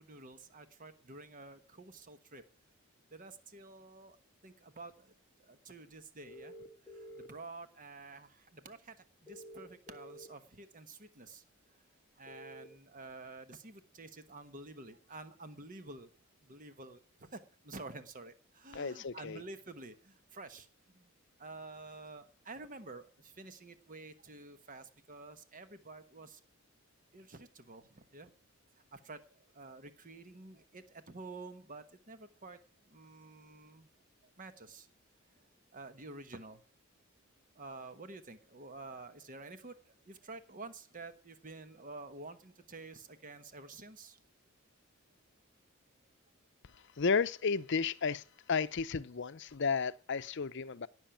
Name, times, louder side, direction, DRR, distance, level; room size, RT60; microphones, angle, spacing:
voice 1, 0.0-2.4 3.1-4.2 4.4-6.5 6.8-11.4 12.1-16.1 16.4-20.7 20.9-21.1 21.4-26.4 27.1-28.3 28.9-33.9 34.2-34.9 35.7-36.6 37.5-44.2, right 3 dB, 40° right, 1.2 m, -50 dB
sound 1, 6.3-7.3 9.3-10.3 12.3-12.7, equal, 10° left, 1.5 m, -50 dB
voice 2, 18.7-19.4 47.0-50.9, left 5 dB, 55° left, 0.6 m, -33 dB
17.5 x 6.4 x 8.9 m
head